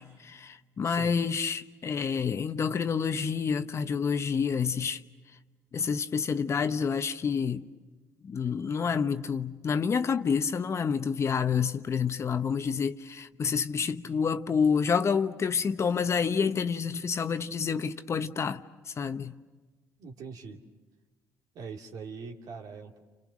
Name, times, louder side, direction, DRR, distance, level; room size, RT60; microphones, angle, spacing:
voice 1, 0.0-5.0 5.7-7.7 8.2-19.4, left 6 dB, 45° left, 1.1 m, -28 dB
voice 2, 0.8-1.1 20.0-20.6 21.5-23.0, right 5 dB, 65° right, 2.5 m, -42 dB
29.5 x 28.5 x 6.4 m
hypercardioid pair, 60°, 7 cm